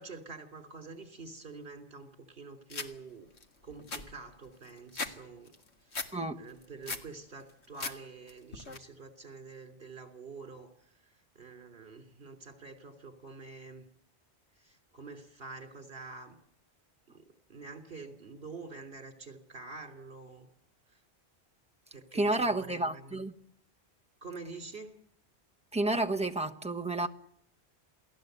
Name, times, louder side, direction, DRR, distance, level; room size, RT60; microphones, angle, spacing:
voice 1, 0.0-3.3 3.6-5.5 5.8-13.9 14.6-16.4 17.1-20.5 20.9-21.0 21.9-23.2 24.2-24.9, right 4 dB, 65° right, 3.2 m, -47 dB
sound 1, 2.7-2.9 3.4-3.5 3.7-5.1 5.5-6.1 6.5-7.1 7.5-8.0 8.3-8.8, left 3 dB, 90° left, 2.1 m, -38 dB
voice 2, 22.1-23.3 25.7-27.1, right 2 dB, 5° right, 1.2 m, -30 dB
28.0 x 18.0 x 8.0 m
omnidirectional pair, 1.1 m